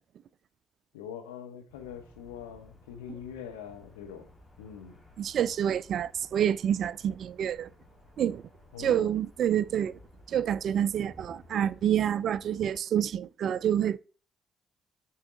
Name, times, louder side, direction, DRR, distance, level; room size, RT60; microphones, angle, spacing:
voice 1, 0.9-4.3 4.6-5.0 8.7-9.1, left 8 dB, 75° left, 0.9 m, -43 dB
sound 1, 1.7-12.8, left 2 dB, 30° left, 2.3 m, -56 dB
voice 2, 5.2-7.7 8.2-8.4 8.8-10.0 10.3-14.0, right 9 dB, 55° right, 0.3 m, -28 dB
8.7 x 4.6 x 2.6 m
figure-of-eight pair, 45°, 0 cm